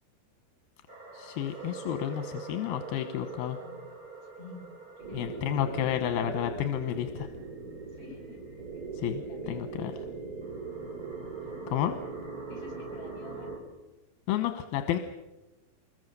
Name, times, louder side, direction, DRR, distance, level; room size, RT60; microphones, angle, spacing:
sound 1, 0.9-13.6, right 4 dB, 25° right, 4.0 m, -41 dB
voice 1, 1.1-3.6 5.1-7.3 8.9-9.9 11.7-12.0 14.3-15.0, left 11 dB, 85° left, 7 dB, 2.9 m, -31 dB
voice 2, 4.2-4.6 5.0-5.5 7.9-10.2 12.5-13.6, left 3 dB, 45° left, 3 dB, 8.9 m, -50 dB
25.5 x 21.5 x 6.7 m, 1.1 s
omnidirectional pair, 4.2 m